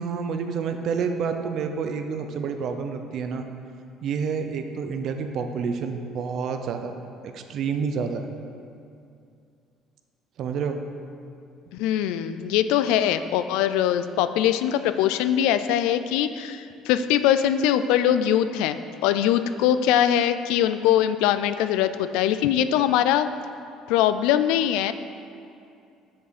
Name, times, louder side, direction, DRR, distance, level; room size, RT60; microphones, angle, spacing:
voice 1, 0.0-3.5 4.0-7.0 7.2-8.3 10.4-10.8, right 5 dB, 55° right, 7 dB, 0.6 m, -29 dB
voice 2, 11.7-23.3 23.9-24.9, left 10 dB, 90° left, 11 dB, 0.3 m, -22 dB
7.2 x 7.1 x 4.1 m, 2.5 s
cardioid pair, 135°, 0 cm